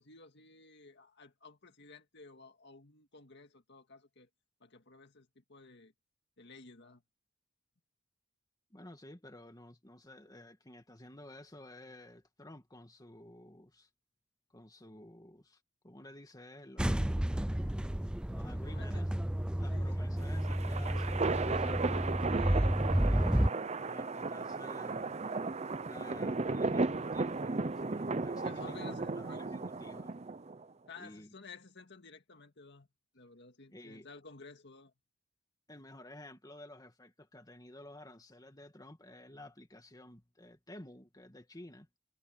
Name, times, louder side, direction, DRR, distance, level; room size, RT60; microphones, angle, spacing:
voice 1, 0.0-4.3 4.6-5.9 6.4-7.0 18.4-19.1 19.7-20.0 20.7-22.7 28.4-29.5 30.9-32.9 33.1-34.9, left 4 dB, 60° left, 2.0 m, -53 dB
voice 2, 8.7-13.9 14.5-17.2 18.3-19.2 19.6-21.2 23.0-25.2 25.8-30.1 31.0-31.3 33.7-34.1 35.7-41.9, left 1 dB, 20° left, 2.0 m, -53 dB
sound 1, 16.8-23.5, right 1 dB, 5° right, 0.4 m, -31 dB
sound 2, 20.2-30.6, right 3 dB, 35° right, 0.7 m, -35 dB
head